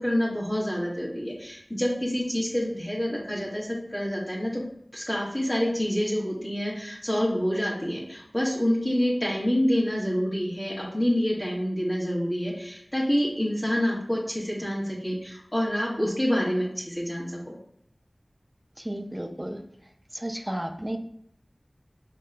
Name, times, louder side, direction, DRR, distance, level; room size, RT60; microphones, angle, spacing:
voice 1, 0.0-4.6 4.9-17.5, equal, 25° left, -7 dB, 1.4 m, -27 dB
voice 2, 18.8-19.6 20.1-21.0, right 1 dB, 20° right, 4 dB, 0.5 m, -33 dB
5.5 x 3.7 x 2.2 m, 0.69 s
wide cardioid pair, 50°, 0 cm